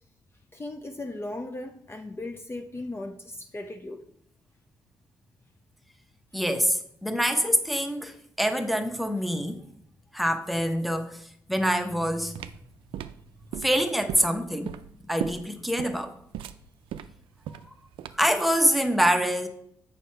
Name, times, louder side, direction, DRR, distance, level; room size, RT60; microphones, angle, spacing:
voice 1, 0.5-4.0, left 2 dB, 25° left, 5 dB, 0.7 m, -37 dB
voice 2, 6.3-9.6 10.1-11.2 11.5-12.4 13.6-14.8 15.1-16.1 18.1-19.5, equal, ahead, 8 dB, 1.0 m, -25 dB
sound 1, 12.1-18.4, right 10 dB, 75° right, 0.4 m, -38 dB
7.1 x 5.6 x 4.4 m, 0.70 s
supercardioid pair, 50°, 9 cm